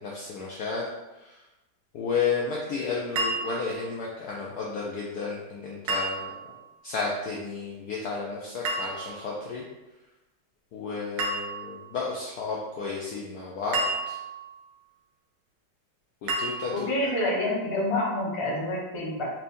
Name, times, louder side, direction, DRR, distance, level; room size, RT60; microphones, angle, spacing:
voice 1, 0.0-0.8 1.2-1.3 1.9-6.3 6.8-9.6 10.7-14.2 16.2-16.9, left 4 dB, 75° left, -3 dB, 0.9 m, -32 dB
sound 1, 3.2-3.9 5.9-6.6 8.6-9.3 11.2-11.9 13.7-14.6 16.3-17.0, right 2 dB, 90° right, 1.6 m, -31 dB
voice 2, 16.7-19.3, left 1 dB, 35° left, -5 dB, 0.5 m, -27 dB
4.3 x 3.4 x 2.6 m, 1.0 s
omnidirectional pair, 2.2 m